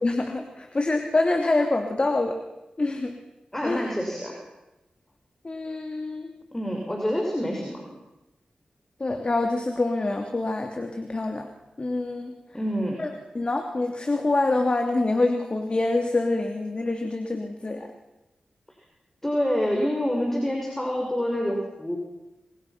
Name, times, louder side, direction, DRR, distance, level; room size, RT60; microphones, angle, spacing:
voice 1, 0.0-2.4 2.8-3.1 3.6-3.9 5.4-6.3 9.0-11.5 11.8-12.3 13.0-17.9, left 2 dB, 40° left, 4 dB, 2.7 m, -26 dB
voice 2, 3.5-4.3 6.5-7.9 12.5-13.0 19.2-22.0, equal, 15° left, 1 dB, 6.2 m, -27 dB
28.5 x 25.5 x 6.0 m, 0.96 s
cardioid pair, 50°, 3 cm